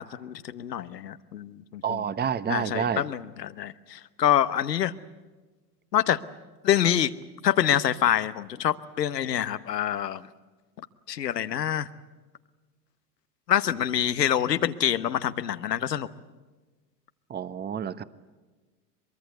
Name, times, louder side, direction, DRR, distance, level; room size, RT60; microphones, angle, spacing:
voice 1, 0.0-2.0 2.5-4.9 5.9-6.2 6.6-7.1 7.4-10.3 11.1-11.9 13.5-16.1, left 10 dB, 85° left, 14 dB, 1.1 m, -26 dB
voice 2, 1.8-3.1 17.3-18.0, right 8 dB, 20° right, 15 dB, 1.0 m, -29 dB
23.5 x 23.0 x 8.0 m, 1.3 s
hypercardioid pair, 85°, 48 cm